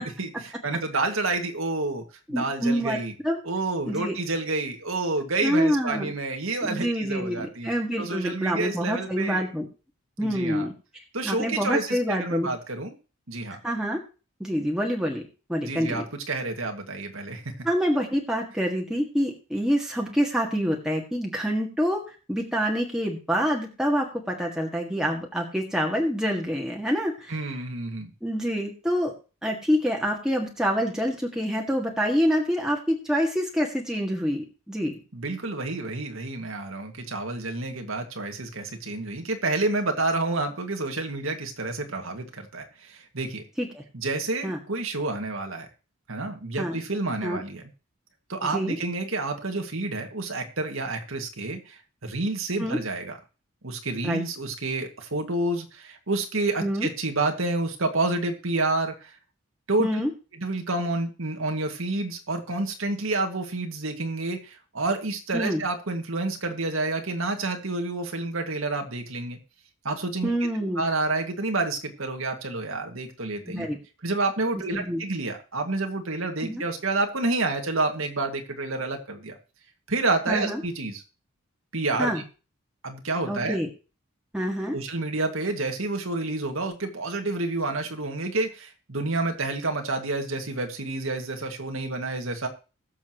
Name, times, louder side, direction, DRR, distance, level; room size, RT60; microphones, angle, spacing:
voice 1, 0.0-3.1 3.4-7.7 8.0-9.5 10.2-10.7 11.1-12.9 13.3-13.6 15.6-17.4 27.3-28.1 35.1-43.4 43.9-45.7 46.1-47.6 48.3-53.2 53.6-59.1 59.7-60.0 60.4-69.4 69.8-70.3 70.6-73.7 74.0-79.4 79.9-81.0 81.7-82.1 82.8-83.6 84.7-92.5, right 2 dB, 80° right, 4 dB, 2.1 m, -29 dB
voice 2, 2.3-3.4 3.9-4.1 5.4-6.1 6.6-9.7 10.2-10.7 11.2-12.5 13.6-14.0 14.4-15.2 15.5-16.0 17.6-22.0 22.3-27.4 28.2-29.1 29.4-35.0 43.6-43.8 44.4-44.6 46.6-46.8 47.2-47.4 48.4-48.8 52.6-52.8 54.0-54.2 56.6-56.9 59.8-60.1 65.3-65.6 70.2-70.8 73.5-73.8 74.7-75.0 76.4-76.6 80.3-80.6 82.0-82.2 83.3-83.7 84.3-84.8, equal, 5° right, -1 dB, 1.8 m, -26 dB
21.0 x 7.3 x 3.0 m, 0.33 s
head